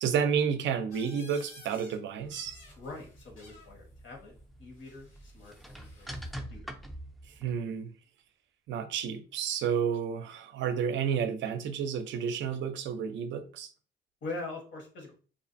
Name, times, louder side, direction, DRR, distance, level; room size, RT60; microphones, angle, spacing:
voice 1, 0.0-2.6 7.3-7.9 8.7-13.7, right 7 dB, 70° right, 0.4 m, -31 dB
sound 1, 0.9-2.0 2.2-3.7 4.8-6.3, left 2 dB, 85° left, 1.4 m, -54 dB
sound 2, 2.2-7.6, equal, ahead, 0.4 m, -46 dB
voice 2, 2.8-4.3 4.6-6.2 6.5-6.7 14.2-15.1, left 2 dB, 65° left, 1.2 m, -43 dB
2.5 x 2.4 x 2.5 m
cardioid pair, 90°, 20 cm